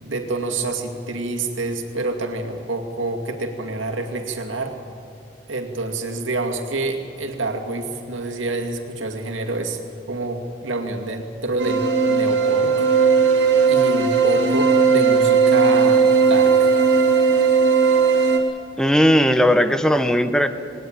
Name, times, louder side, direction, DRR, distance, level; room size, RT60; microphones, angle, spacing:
voice 1, 0.0-4.8 5.5-9.8 10.1-12.9 13.7-16.7, right 2 dB, 90° right, 3 dB, 2.4 m, -27 dB
sound 1, 11.6-18.4, right 5 dB, 65° right, 3.2 m, -17 dB
voice 2, 18.8-20.5, equal, 5° left, 9 dB, 0.8 m, -17 dB
19.5 x 18.5 x 9.0 m, 2.4 s
head